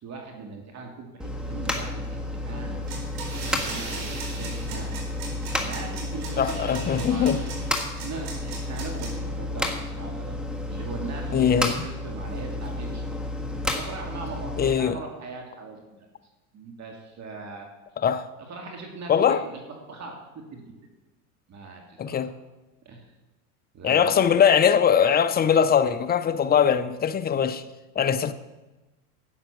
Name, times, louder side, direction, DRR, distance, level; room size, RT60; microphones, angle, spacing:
voice 1, 0.0-2.8 3.4-4.9 5.5-6.6 7.0-7.3 8.0-10.4 10.7-13.0 13.7-16.1 16.5-17.7 18.4-20.7 21.5-22.2 22.9-23.1 23.7-24.4, right 4 dB, 35° right, 2.3 m, -40 dB
sound 1, 1.2-14.7, left 1 dB, ahead, 1.5 m, -31 dB
sound 2, 2.9-9.1, right 4 dB, 55° right, 4.4 m, -38 dB
voice 2, 6.4-7.4 11.3-11.8 14.6-15.0 18.0-18.3 19.1-19.4 22.0-22.3 23.8-27.6 27.9-28.3, left 8 dB, 20° left, 0.6 m, -21 dB
12.0 x 8.9 x 6.0 m
supercardioid pair, 105°, 47 cm